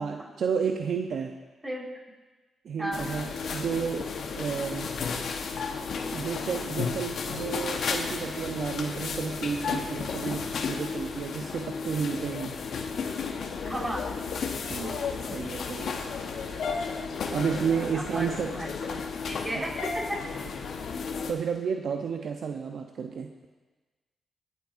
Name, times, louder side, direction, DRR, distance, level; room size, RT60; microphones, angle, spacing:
voice 1, 0.0-1.3 2.6-4.9 6.1-12.6 14.7-16.0 17.3-18.5 19.6-19.7 21.3-23.3, right 6 dB, 70° right, 4 dB, 0.6 m, -32 dB
sound 1, 2.9-21.3, left 5 dB, 70° left, 1.1 m, -33 dB
voice 2, 13.6-14.1 17.6-19.0 19.2-20.0, right 1 dB, 25° right, -2 dB, 4.1 m, -35 dB
24.0 x 8.1 x 2.6 m, 1.3 s
supercardioid pair, 50°, 0 cm